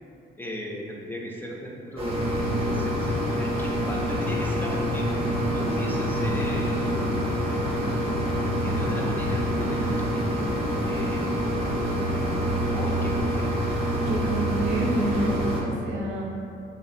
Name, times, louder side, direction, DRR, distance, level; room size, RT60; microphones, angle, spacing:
voice 1, 0.4-5.1 5.4-6.9 8.6-10.3 10.8-11.4 12.7-13.6, equal, 10° left, -2 dB, 0.3 m, -37 dB
sound 1, 2.0-15.6, equal, 30° right, 0.6 m, -26 dB
sound 2, 5.3-12.6, left 2 dB, 70° left, 0.6 m, -38 dB
voice 2, 14.1-16.2, right 1 dB, 85° right, -2 dB, 0.5 m, -28 dB
2.7 x 2.4 x 2.5 m, 2.5 s
cardioid pair, 90°, 20 cm